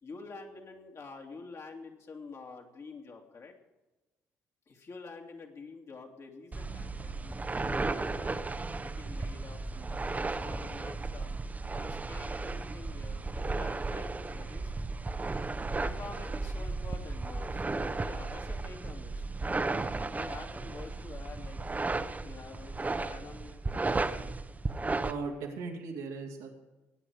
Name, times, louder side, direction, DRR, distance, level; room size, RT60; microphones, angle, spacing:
voice 1, 0.0-3.5 4.7-8.3 8.8-11.3 11.7-14.7 15.8-19.2 20.1-21.6 22.2-23.6, left 4 dB, 45° left, 1 dB, 2.6 m, -48 dB
sound 1, 6.5-25.1, right 3 dB, 25° right, 1.0 m, -34 dB
voice 2, 25.0-26.5, right 4 dB, 80° right, 0 dB, 2.4 m, -38 dB
19.5 x 9.1 x 4.9 m, 1.1 s
hypercardioid pair, 50°, 7 cm